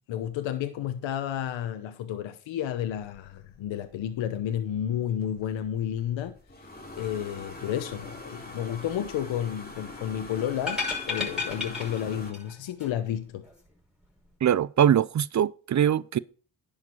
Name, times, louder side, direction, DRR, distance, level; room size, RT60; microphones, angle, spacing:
voice 1, 0.1-6.7 6.9-13.5, left 10 dB, 75° left, 1.0 m, -31 dB
sound 1, 2.9-12.3, left 2 dB, 20° left, 3.5 m, -45 dB
Baseball bat drop, 10.6-12.5 12.8-12.9, left 4 dB, ahead, 5.8 m, -32 dB
voice 2, 14.4-16.2, right 9 dB, 40° right, 0.5 m, -22 dB
10.5 x 5.2 x 5.5 m
supercardioid pair, 60°, 46 cm